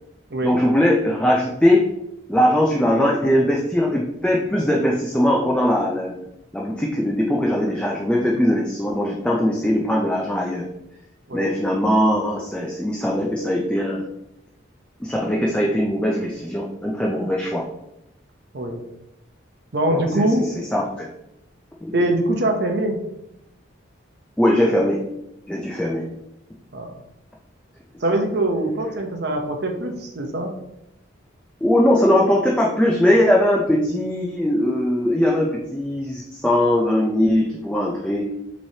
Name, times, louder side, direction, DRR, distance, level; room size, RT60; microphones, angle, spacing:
voice 1, 0.4-1.9 2.3-6.1 6.5-10.7 11.3-14.0 15.0-17.7 19.9-21.1 21.8-21.9 24.4-25.0 25.5-26.0 31.6-38.3, left 1 dB, 5° left, -3 dB, 0.4 m, -20 dB
voice 2, 19.7-20.7 21.9-23.0 26.7-26.9 28.0-30.5, right 1 dB, 55° right, 3 dB, 0.7 m, -23 dB
6.0 x 3.1 x 2.8 m, 0.86 s
head